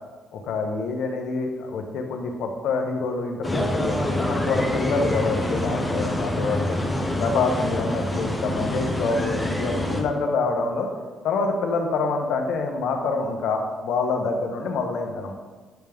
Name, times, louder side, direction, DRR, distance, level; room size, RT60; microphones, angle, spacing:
voice 1, 0.3-6.8 7.2-10.9 11.2-15.3, left 4 dB, 80° left, 3 dB, 0.8 m, -26 dB
sound 1, 3.4-10.0, left 1 dB, 10° left, 0.9 m, -26 dB
9.0 x 3.4 x 3.4 m, 1.4 s
cardioid pair, 90°, 0 cm